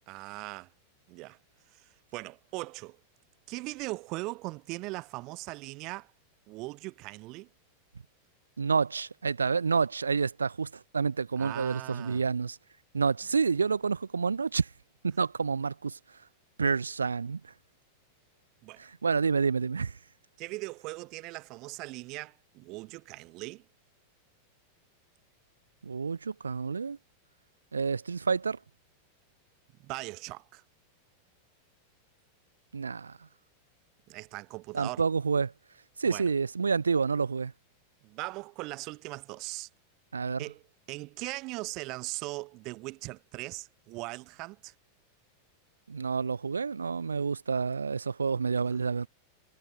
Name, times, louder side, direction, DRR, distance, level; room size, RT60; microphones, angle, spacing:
voice 1, 0.1-0.7 1.1-1.4 1.7-3.0 3.5-6.1 6.5-7.5 11.4-12.2 18.6-18.9 20.4-23.6 29.8-30.6 34.1-35.0 36.0-36.3 38.0-39.7 40.4-40.6 40.9-44.7 48.7-48.8, right 23 dB, 40° right, 4.4 m, -40 dB
voice 2, 8.6-12.6 12.9-14.7 15.0-16.0 16.6-17.4 18.8-19.9 25.8-27.0 27.7-28.6 32.7-33.1 34.7-35.5 36.0-37.5 40.1-40.4 45.9-49.1, right 5 dB, 75° right, 0.8 m, -28 dB
figure-of-eight pair, 90°, 0 cm